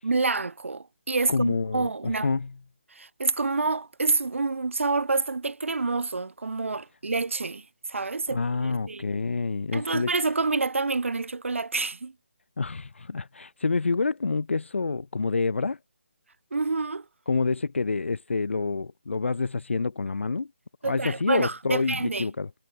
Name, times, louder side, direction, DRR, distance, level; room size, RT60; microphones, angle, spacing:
voice 1, 0.0-2.3 2.9-9.1 9.7-12.1 16.5-17.1 20.8-22.3, right 3 dB, 80° right, 0.9 m, -28 dB
voice 2, 1.3-2.5 8.3-10.1 12.6-15.8 17.3-20.5 20.8-22.5, left 4 dB, 70° left, 0.5 m, -27 dB
hypercardioid pair, 180°, 7 cm